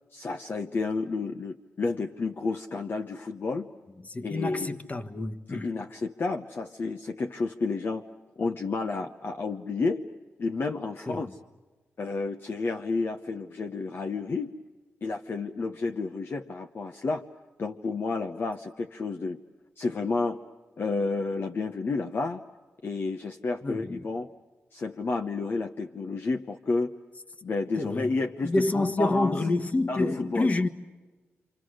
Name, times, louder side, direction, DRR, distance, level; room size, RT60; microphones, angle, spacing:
voice 1, 0.1-3.7 4.2-4.8 5.5-8.0 8.4-10.0 10.4-11.3 12.0-14.6 15.0-17.2 17.6-19.4 19.8-20.4 20.8-22.4 22.8-24.3 24.7-27.0 27.4-29.4 29.9-30.5, left 3 dB, 50° left, 0.9 m, -31 dB
voice 2, 4.0-5.7 11.1-11.3 23.6-24.1 27.8-28.2 28.4-30.7, left 2 dB, 30° left, 1.4 m, -28 dB
28.0 x 26.5 x 6.4 m
cardioid pair, 95°, 5 cm